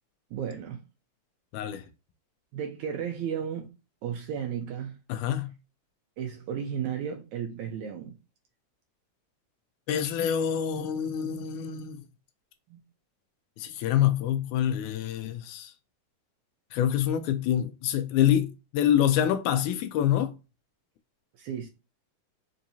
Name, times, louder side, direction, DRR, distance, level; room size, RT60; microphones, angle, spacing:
voice 1, 0.3-0.8 2.5-3.7 4.0-5.0 6.2-8.1 12.7-12.8 21.3-21.7, right 8 dB, 80° right, 1.7 m, -34 dB
voice 2, 1.5-1.8 5.1-5.5 9.9-12.0 13.6-15.7 16.7-20.4, left 10 dB, 85° left, 1.7 m, -26 dB
5.2 x 2.8 x 2.7 m
omnidirectional pair, 4.0 m